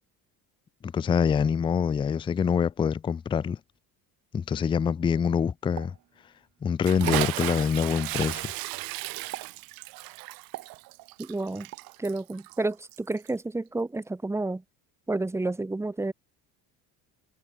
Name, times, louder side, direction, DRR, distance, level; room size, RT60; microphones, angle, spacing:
voice 1, 0.8-3.6 4.3-5.9 6.6-8.5, left 7 dB, 15° left, 0.4 m, -25 dB
Explosion, 5.8-6.6 6.9-7.4 8.2-8.6 9.3-9.7 10.5-11.2 11.7-12.0, right 16 dB, 55° right, 3.2 m, -42 dB
Bathtub (filling or washing) / Splash splatter, 6.8-13.4, right 22 dB, 75° right, 5.1 m, -35 dB
voice 2, 11.2-11.7 12.0-14.6 15.1-16.1, right 2 dB, 5° right, 2.2 m, -30 dB
cardioid pair, 175°, 36 cm